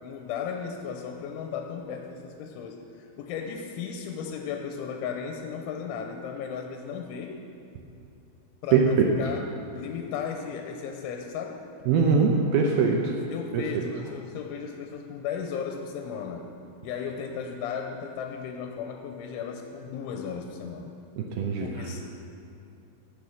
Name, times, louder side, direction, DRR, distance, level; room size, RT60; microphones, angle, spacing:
voice 1, 0.0-7.4 8.6-9.5 9.7-11.6 13.3-16.6 16.8-20.9 21.6-22.3, left 6 dB, 85° left, 3 dB, 3.2 m, -35 dB
voice 2, 8.7-9.1 11.9-13.1 13.5-13.8 21.2-21.7, right 5 dB, 90° right, 0 dB, 2.1 m, -22 dB
16.5 x 6.8 x 6.2 m, 2.6 s
omnidirectional pair, 5.5 m